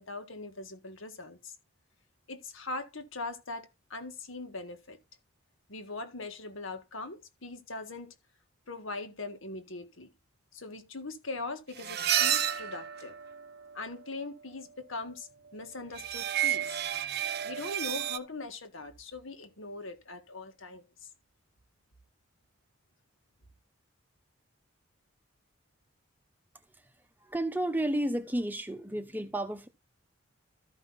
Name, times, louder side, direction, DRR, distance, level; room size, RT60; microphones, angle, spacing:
voice 1, 0.0-1.5 2.3-5.0 5.7-8.1 8.7-10.1 10.5-13.2 13.7-21.1, left 3 dB, 75° left, 1.8 m, -41 dB
sound 1, 11.8-13.8 16.0-18.2, right 10 dB, 50° right, 0.6 m, -31 dB
voice 2, 27.2-29.7, right 1 dB, 10° right, 0.8 m, -32 dB
13.5 x 5.5 x 4.0 m
head